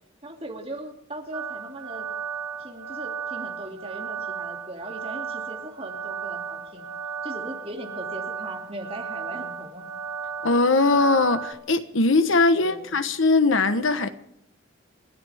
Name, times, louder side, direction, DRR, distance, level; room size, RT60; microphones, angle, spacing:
voice 1, 0.2-2.1 2.6-6.9 7.2-9.9 12.5-13.0, right 1 dB, 30° right, 2.8 m, -39 dB
sound 1, 1.3-11.5, right 6 dB, 75° right, 2.2 m, -34 dB
voice 2, 10.4-14.1, left 3 dB, 75° left, 1.2 m, -20 dB
29.5 x 13.0 x 3.6 m
head